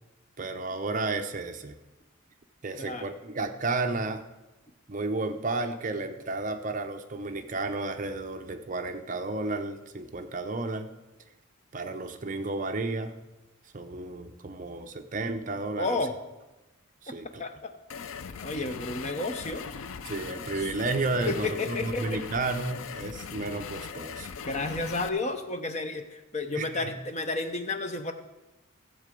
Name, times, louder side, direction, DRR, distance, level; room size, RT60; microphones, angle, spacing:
voice 1, 0.4-1.7 2.6-4.2 4.9-10.9 11.7-13.1 13.7-16.0 17.0-17.4 20.1-24.3 26.5-26.9, right 3 dB, 40° right, 7 dB, 0.7 m, -32 dB
voice 2, 2.8-3.1 15.8-16.1 17.4-17.7 18.4-19.7 20.5-20.7 21.3-22.2 24.4-28.1, left 3 dB, 35° left, 7 dB, 0.8 m, -32 dB
sound 1, 17.9-25.1, left 6 dB, 75° left, 0.5 m, -40 dB
15.0 x 7.6 x 5.2 m, 1.1 s
head